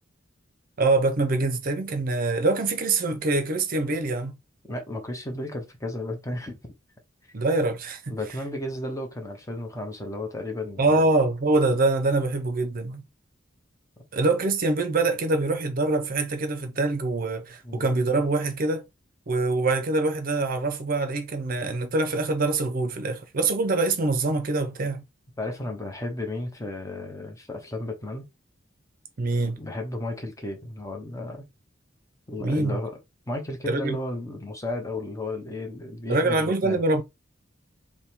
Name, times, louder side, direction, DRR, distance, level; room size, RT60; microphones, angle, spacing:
voice 1, 0.8-4.3 7.3-8.2 10.8-13.0 14.1-18.9 19.3-25.0 29.2-29.6 32.4-32.8 33.7-34.0 36.1-37.0, right 2 dB, 45° right, 0.6 m, -24 dB
voice 2, 4.6-6.6 8.1-11.0 17.6-17.9 25.4-28.2 29.4-31.5 32.3-33.0 33.3-36.8, left 1 dB, 15° left, 0.9 m, -33 dB
3.5 x 2.2 x 4.3 m
head